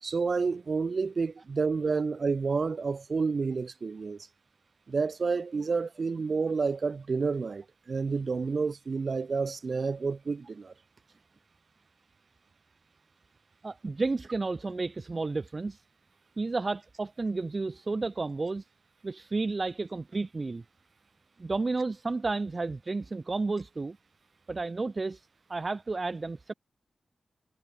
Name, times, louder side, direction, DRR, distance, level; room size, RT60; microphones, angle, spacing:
voice 1, 0.0-4.2 4.9-10.7, right 4 dB, 65° right, 2.5 m, -29 dB
voice 2, 13.6-15.8 16.4-18.6 19.0-20.6 21.4-24.0 24.5-26.5, right 3 dB, 45° right, 1.2 m, -32 dB
cardioid pair, 45°, 0 cm